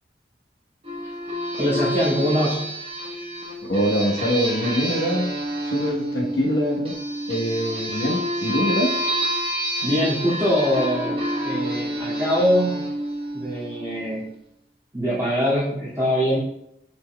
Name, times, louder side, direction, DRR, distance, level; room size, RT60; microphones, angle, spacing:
sound 1, 0.8-14.1, equal, 30° right, 1.3 m, -28 dB
voice 1, 1.6-2.7 9.8-12.9 13.3-14.3 14.9-16.4, equal, 15° right, -12 dB, 2.3 m, -23 dB
voice 2, 3.6-5.3 5.6-6.9 7.3-8.9, equal, 80° left, -1 dB, 1.3 m, -24 dB
9.5 x 4.3 x 2.3 m, 0.78 s
head